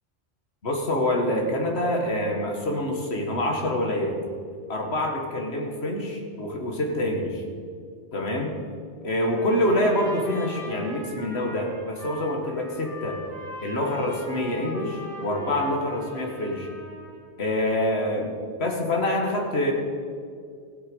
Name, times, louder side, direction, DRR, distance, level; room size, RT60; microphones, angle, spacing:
voice 1, 0.6-4.2 4.7-7.4 8.1-8.5 9.0-13.2 13.6-16.7 17.4-18.3 18.6-19.7, left 1 dB, 60° left, 1 dB, 2.0 m, -26 dB
Trumpet, 9.2-17.3, equal, 50° right, 3.0 m, -41 dB
16.5 x 8.2 x 5.4 m, 2.2 s
omnidirectional pair, 1.2 m